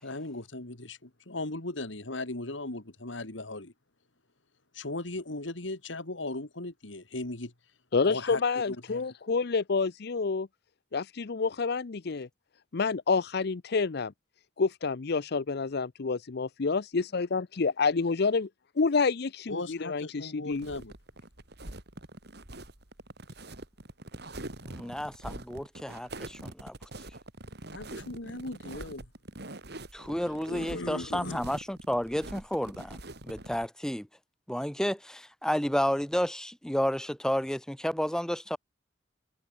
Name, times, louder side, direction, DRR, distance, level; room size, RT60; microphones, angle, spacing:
voice 1, 0.0-3.7 4.7-7.5 8.1-8.4 8.7-9.0 19.5-20.9 27.7-29.1 30.5-31.4, left 2 dB, 85° left, 2.7 m, -37 dB
voice 2, 7.9-10.5 10.9-12.3 12.7-14.1 14.6-18.5 18.8-20.7, left 4 dB, 60° left, 0.6 m, -28 dB
sound 1, 20.5-33.7, right 1 dB, 60° right, 4.4 m, -44 dB
voice 3, 24.7-26.7 29.9-33.0 33.2-34.1 34.5-38.6, equal, 5° left, 1.1 m, -31 dB
head